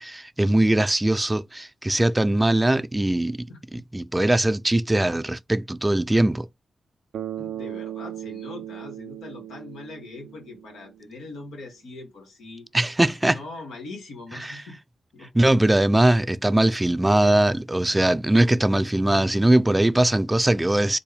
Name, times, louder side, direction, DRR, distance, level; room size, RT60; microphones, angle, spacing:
voice 1, 0.0-3.5 3.9-6.5 12.7-13.4 14.4-14.6 15.3-21.0, right 1 dB, 20° right, 0.4 m, -21 dB
Bass guitar, 7.1-11.1, right 11 dB, 85° right, 0.4 m, -37 dB
voice 2, 7.4-12.7 13.3-14.8 15.1-15.3, left 3 dB, 90° left, 1.3 m, -41 dB
4.2 x 2.2 x 3.4 m
supercardioid pair, 50°, 0 cm